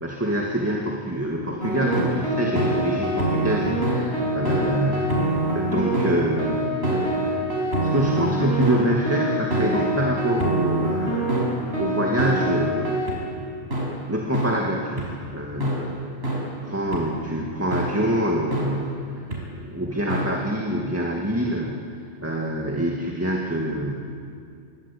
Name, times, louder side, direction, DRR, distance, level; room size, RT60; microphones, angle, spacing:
voice 1, 0.0-7.4 7.8-11.5 11.8-13.0 14.1-19.1 19.6-21.9 22.2-23.9, equal, 10° right, -1 dB, 2.2 m, -26 dB
sound 1, 1.6-13.2 13.7-13.8 14.3-14.5 15.0-15.1 15.6-15.7 16.2-16.4 16.9-17.0 17.7-17.9 18.5-18.6 19.3-19.4 20.1-20.2, right 1 dB, 60° right, 6.0 m, -24 dB
26.5 x 24.0 x 8.6 m, 2.4 s
omnidirectional pair, 1.2 m